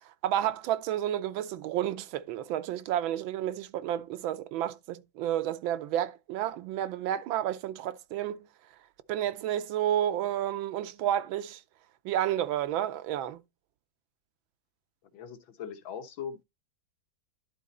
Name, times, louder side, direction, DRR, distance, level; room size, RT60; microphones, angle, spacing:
voice 1, 0.1-8.5 9.1-11.6 12.0-13.4, right 11 dB, 85° right, 1.5 m, -31 dB
voice 2, 15.1-16.4, left 7 dB, 80° left, 1.9 m, -40 dB
11.0 x 4.0 x 4.1 m
omnidirectional pair, 2.1 m